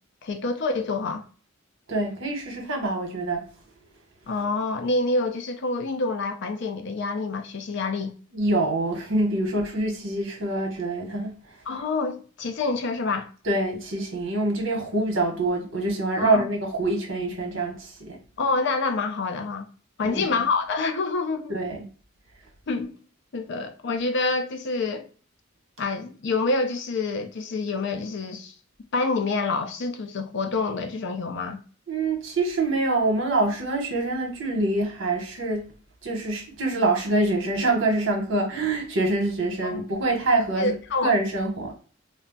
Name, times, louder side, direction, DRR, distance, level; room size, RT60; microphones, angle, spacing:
voice 1, 0.2-1.2 4.3-8.1 11.7-13.3 16.2-16.5 18.4-19.7 20.0-21.5 22.7-22.9 23.3-25.1 25.8-28.5 28.9-31.6 39.6-39.8 40.6-41.1, left 3 dB, 60° left, 0.5 m, -27 dB
voice 2, 1.9-3.4 8.3-11.3 13.5-18.2 20.0-20.4 21.5-21.8 31.9-35.6 36.0-40.7 41.0-41.7, right 2 dB, 65° right, 1.0 m, -25 dB
2.3 x 2.2 x 3.8 m
head